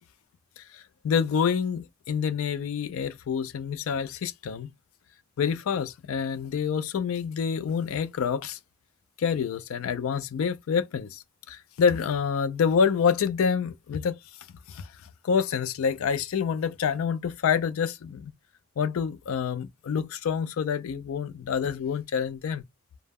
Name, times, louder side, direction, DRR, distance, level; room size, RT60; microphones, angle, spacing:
voice 1, 0.6-4.7 5.4-8.6 9.2-14.2 14.7-14.9 15.2-18.3 18.8-22.6, left 6 dB, 75° left, 0.4 m, -27 dB
2.1 x 2.0 x 3.4 m
head